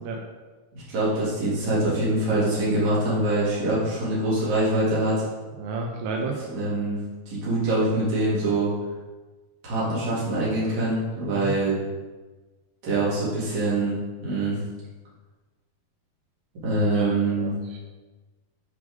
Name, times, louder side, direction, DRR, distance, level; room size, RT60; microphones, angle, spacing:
voice 1, 0.7-5.2 6.5-7.0 7.3-8.7 9.6-11.8 12.8-14.6 16.6-17.5, right 2 dB, 45° right, -8 dB, 3.9 m, -24 dB
voice 2, 5.6-6.4 11.3-11.5 16.9-17.8, right 4 dB, 85° right, 0 dB, 3.1 m, -32 dB
11.5 x 5.2 x 3.8 m, 1.3 s
omnidirectional pair, 4.7 m